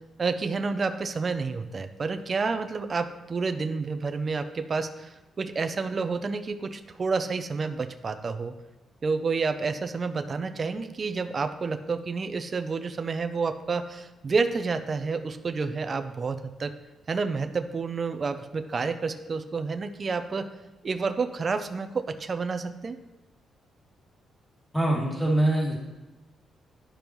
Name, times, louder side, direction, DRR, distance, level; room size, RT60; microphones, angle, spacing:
voice 1, 0.2-8.5 9.0-16.7 17.1-20.5 20.8-23.0, right 4 dB, 35° right, 8 dB, 0.5 m, -29 dB
voice 2, 24.7-25.7, right 1 dB, 5° left, -4 dB, 2.2 m, -23 dB
11.5 x 5.2 x 3.0 m, 1.1 s
cardioid pair, 120°, 0 cm